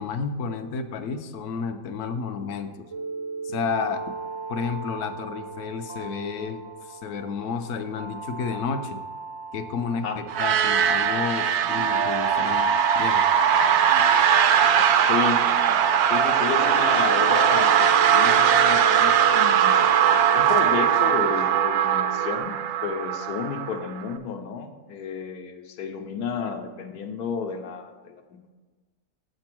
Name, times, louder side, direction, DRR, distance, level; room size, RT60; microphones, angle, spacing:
voice 1, 0.0-2.8 3.4-4.0 4.5-9.0 9.5-12.7 13.0-13.2, left 5 dB, 65° left, 7 dB, 0.9 m, -31 dB
sound 1, 2.9-22.4, right 4 dB, 45° right, 0.3 m, -35 dB
sound 2, 10.3-24.0, right 8 dB, 85° right, 1.1 m, -20 dB
voice 2, 15.0-15.5 16.1-19.7 20.3-22.5 22.8-28.5, left 6 dB, 90° left, 5 dB, 1.3 m, -31 dB
7.5 x 5.2 x 6.0 m, 1.4 s
omnidirectional pair, 1.6 m